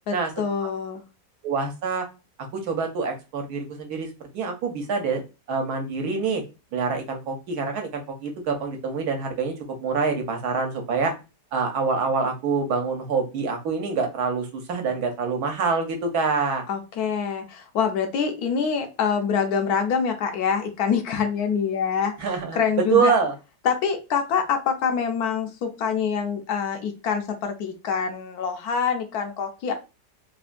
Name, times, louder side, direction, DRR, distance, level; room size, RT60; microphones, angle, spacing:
voice 1, 0.1-1.0 16.7-22.1 22.5-23.1 23.6-29.7, left 6 dB, 75° left, 5 dB, 1.1 m, -25 dB
voice 2, 1.4-2.1 2.5-4.1 4.3-5.2 5.5-6.4 6.7-9.5 9.8-11.1 11.5-16.6 22.2-22.6 22.9-23.3, right 5 dB, 75° right, 4 dB, 1.2 m, -25 dB
3.4 x 2.2 x 2.4 m, 0.29 s
omnidirectional pair, 1.7 m